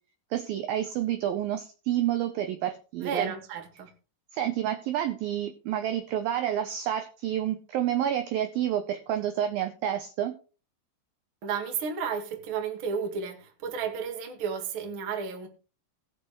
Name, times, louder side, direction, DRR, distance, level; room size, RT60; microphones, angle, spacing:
voice 1, 0.3-3.3 4.3-10.3, right 11 dB, 75° right, 2.2 m, -29 dB
voice 2, 3.0-3.9 11.4-15.5, right 6 dB, 45° right, 1.7 m, -32 dB
19.5 x 6.6 x 3.1 m
omnidirectional pair, 5.0 m